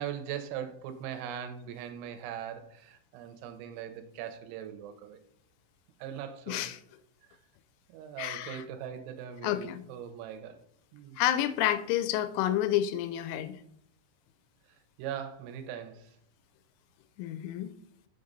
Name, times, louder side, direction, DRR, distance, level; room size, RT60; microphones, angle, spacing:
voice 1, 0.0-5.2 6.0-6.7 7.9-10.6 10.9-11.2 15.0-16.1, right 9 dB, 80° right, 7 dB, 3.1 m, -40 dB
voice 2, 6.5-6.8 8.2-8.6 9.4-9.8 11.2-13.6 17.2-17.7, left 12 dB, 85° left, 12 dB, 3.0 m, -29 dB
6.6 x 6.6 x 4.0 m, 0.68 s
omnidirectional pair, 5.6 m